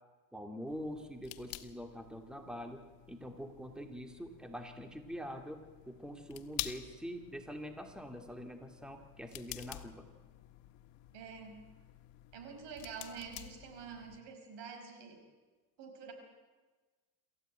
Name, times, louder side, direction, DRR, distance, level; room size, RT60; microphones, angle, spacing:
voice 1, 0.3-2.8 3.1-10.1, equal, ahead, 5 dB, 2.2 m, -45 dB
sound 1, 0.7-14.2, left 16 dB, 80° left, 1.5 m, -49 dB
voice 2, 11.1-11.6 12.3-15.2 15.8-16.1, right 6 dB, 75° right, 6 dB, 5.2 m, -47 dB
27.0 x 14.0 x 9.1 m, 1.3 s
cardioid pair, 105°, 42 cm